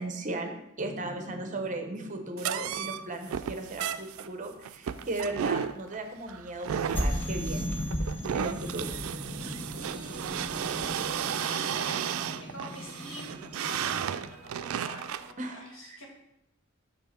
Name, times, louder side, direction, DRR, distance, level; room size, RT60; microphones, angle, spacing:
voice 1, 0.0-7.7 8.3-8.9 15.4-15.6 15.9-16.0, right 2 dB, 40° right, 5 dB, 0.8 m, -36 dB
sound 1, 0.8-3.8 6.9-14.2, equal, 10° left, 0.6 m, -37 dB
sound 2, 2.4-15.3, right 8 dB, 90° right, 0.3 m, -34 dB
voice 2, 9.7-10.3 11.1-16.1, left 1 dB, 80° left, -2 dB, 2.1 m, -46 dB
Wind instrument woodwind instrument, 9.8-14.5, right 4 dB, 65° left, 1.7 m, -58 dB
6.1 x 5.4 x 4.3 m, 0.80 s
head